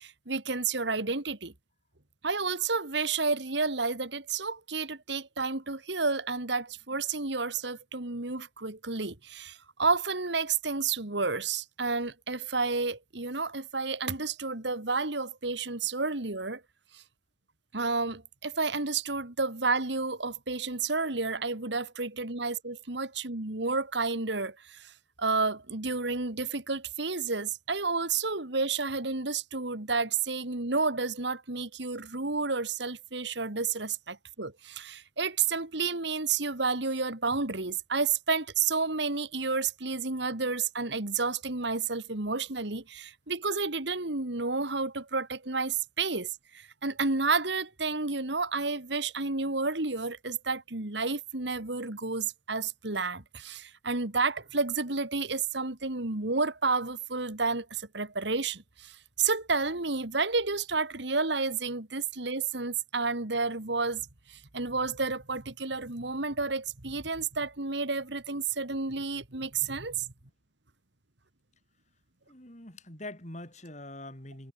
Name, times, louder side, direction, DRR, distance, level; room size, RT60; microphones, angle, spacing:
voice 1, 0.0-1.5 2.2-16.6 16.9-17.0 17.7-24.9 25.2-70.1, right 4 dB, 70° right, 2.3 m, -31 dB
voice 2, 72.3-74.5, left 1 dB, 40° left, 5.1 m, -43 dB
head